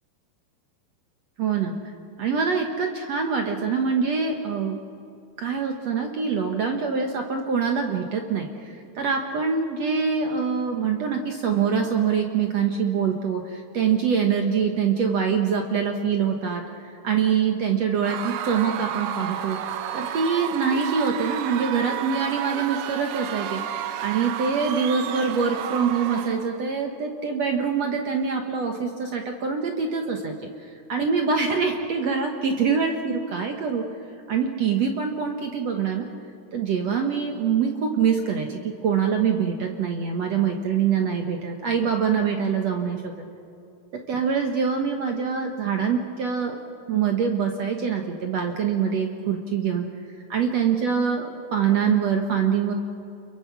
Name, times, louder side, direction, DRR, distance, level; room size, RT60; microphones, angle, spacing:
voice 1, 1.4-1.8 2.2-4.8 5.4-16.6 17.0-19.6 19.9-23.6 24.0-30.4 30.9-33.8 34.3-36.1 36.5-43.2 44.1-46.6 46.9-49.9 50.3-52.7, right 6 dB, 65° right, 3 dB, 1.6 m, -24 dB
Screaming / Cheering / Crowd, 18.0-26.6, right 10 dB, 80° right, 2.9 m, -31 dB
29.5 x 22.5 x 6.0 m, 2.6 s
omnidirectional pair, 4.7 m